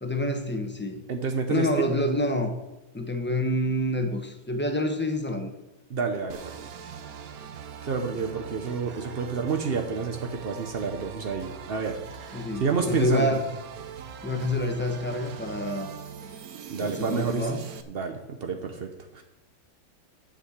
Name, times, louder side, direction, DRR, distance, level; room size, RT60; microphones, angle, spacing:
voice 1, 0.0-1.0 1.5-2.5 2.9-5.5 12.3-13.4 14.2-15.9 16.8-17.6, left 1 dB, 15° left, 5 dB, 0.4 m, -27 dB
voice 2, 1.1-1.7 5.9-6.6 7.8-13.4 16.7-17.5 17.9-19.2, right 5 dB, 75° right, 5 dB, 0.5 m, -29 dB
sound 1, 6.3-17.8, right 7 dB, 60° right, 1.0 m, -42 dB
8.5 x 6.6 x 8.0 m, 0.97 s
omnidirectional pair, 2.2 m